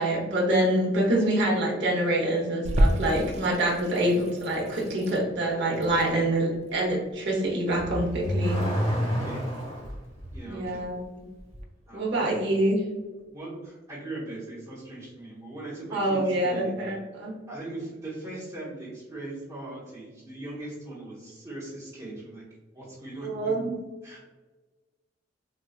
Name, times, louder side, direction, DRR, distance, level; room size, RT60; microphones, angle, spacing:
voice 1, 0.0-8.6 10.4-11.0 11.9-12.8 15.9-17.4 23.2-23.7, right 1 dB, 65° right, -2 dB, 0.9 m, -26 dB
Water tap faucet / Sink (filling or washing), 2.6-11.6, equal, 35° right, 0.3 m, -32 dB
Car / Accelerating revving vroom, 7.7-9.9, equal, 30° left, 1.4 m, -28 dB
voice 2, 9.0-9.4 10.3-10.9 11.9-12.3 13.3-16.7 17.5-22.4 22.7-23.5 24.0-24.2, right 2 dB, 20° right, -9 dB, 1.0 m, -39 dB
4.1 x 2.3 x 2.3 m, 1.2 s
head